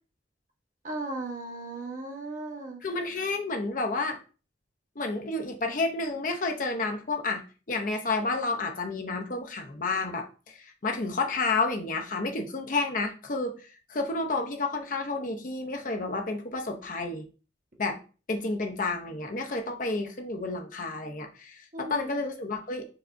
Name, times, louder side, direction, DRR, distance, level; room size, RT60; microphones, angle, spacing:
voice 1, 0.8-2.8 21.7-22.2, right 2 dB, 45° right, 1 dB, 1.1 m, -36 dB
voice 2, 2.8-4.2 5.0-7.4 7.7-17.3 17.8-18.0 18.3-22.8, left 3 dB, 45° left, 3 dB, 0.7 m, -30 dB
4.7 x 3.3 x 2.6 m, 0.35 s
head